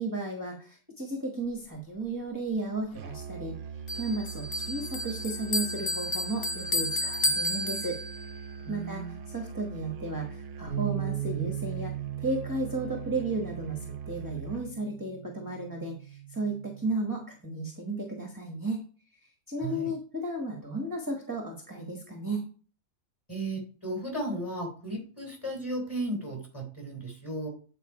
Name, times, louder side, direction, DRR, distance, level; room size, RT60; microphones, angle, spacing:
voice 1, 0.0-3.6 3.9-8.0 8.7-11.9 12.2-13.8 14.1-18.8 19.5-22.4, right 2 dB, 15° right, 2 dB, 1.1 m, -34 dB
Musical instrument, 2.9-14.8, right 6 dB, 65° right, 0.9 m, -42 dB
Bell, 3.9-8.4, left 1 dB, 45° left, 1.0 m, -31 dB
voice 2, 8.6-9.2 19.6-19.9 23.3-27.5, right 1 dB, 15° left, 2 dB, 3.4 m, -35 dB
sound 1, 10.7-16.9, right 13 dB, 85° left, 1.9 m, -38 dB
9.2 x 4.4 x 4.8 m, 0.40 s
omnidirectional pair, 1.4 m